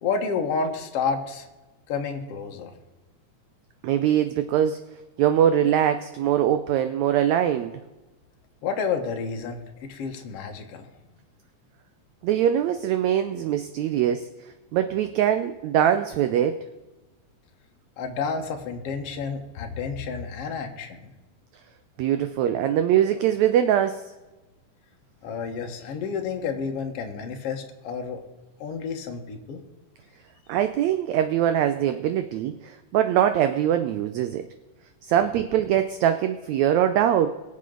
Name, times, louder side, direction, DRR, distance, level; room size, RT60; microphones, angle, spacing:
voice 1, 0.0-1.5 1.9-2.7 8.6-10.9 18.0-21.1 25.2-28.2 28.6-29.6, left 5 dB, 55° left, 3 dB, 2.0 m, -30 dB
voice 2, 3.8-4.8 5.2-7.7 12.2-14.3 14.7-16.6 22.0-24.0 30.5-34.5 35.0-37.4, right 10 dB, 85° right, 10 dB, 1.6 m, -22 dB
22.5 x 7.6 x 3.9 m, 1.1 s
omnidirectional pair, 3.8 m